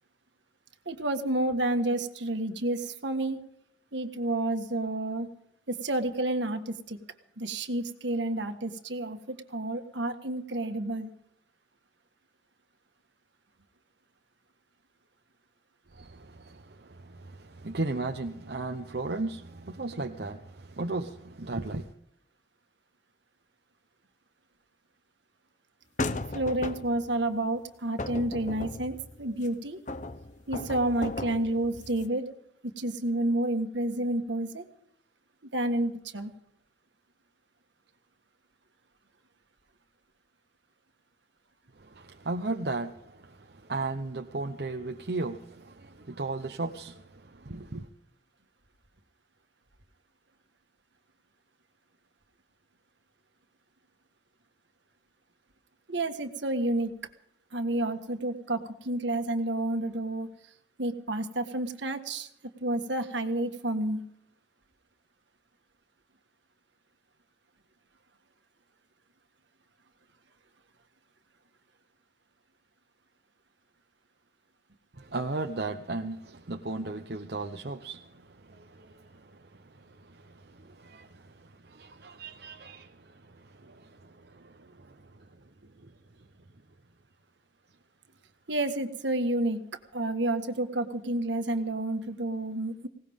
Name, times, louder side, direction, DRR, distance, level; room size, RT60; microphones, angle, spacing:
voice 1, 0.8-3.4 3.9-5.3 5.7-7.0 7.4-11.1 26.3-29.8 30.5-32.3 32.6-34.6 35.5-36.3 55.9-56.9 57.5-60.3 60.8-62.3 62.6-64.0 88.5-89.6 89.9-92.9, right 1 dB, 75° right, 1.6 m, -30 dB
voice 2, 15.9-21.9 41.8-47.9 74.9-85.3 85.8-85.9, right 2 dB, 55° right, 0.8 m, -36 dB
sound 1, 26.0-27.1 28.0-29.5 29.9-32.1, left 2 dB, 40° left, 0.8 m, -36 dB
20.0 x 18.0 x 3.6 m
head